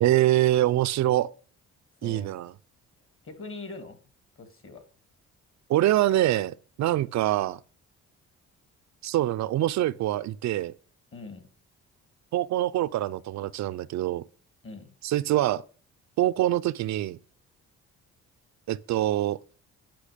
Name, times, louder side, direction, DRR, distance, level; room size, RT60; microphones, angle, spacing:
voice 1, 0.0-1.3 2.0-2.5 5.7-7.6 9.0-10.7 12.3-14.2 15.0-15.6 16.2-17.2 18.7-19.4, right 14 dB, 65° right, 0.5 m, -24 dB
voice 2, 2.0-2.3 3.2-4.0 4.4-4.8 11.1-11.5 14.6-14.9, left 3 dB, 45° left, 2.4 m, -42 dB
10.0 x 5.9 x 5.0 m
cardioid pair, 90°, 30 cm